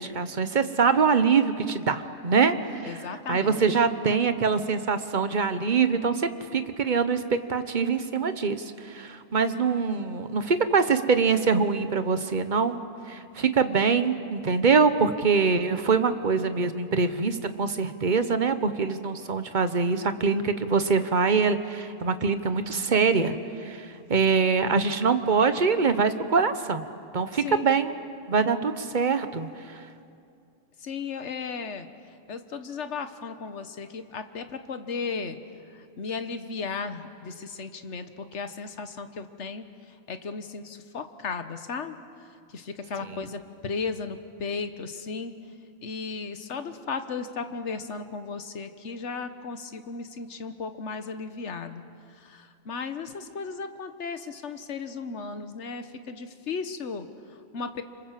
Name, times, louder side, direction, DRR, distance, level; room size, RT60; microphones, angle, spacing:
voice 1, 0.0-12.8 13.1-26.8 27.1-27.9 28.3-29.8 43.0-43.1, right 5 dB, 40° right, 10 dB, 1.1 m, -24 dB
voice 2, 2.9-3.8 27.4-27.6 30.8-31.9 32.3-35.4 35.7-42.0 42.5-45.4 45.8-51.8 52.1-57.8, left 5 dB, 65° left, 9 dB, 1.5 m, -35 dB
26.5 x 25.5 x 7.6 m, 2.5 s
omnidirectional pair, 1.3 m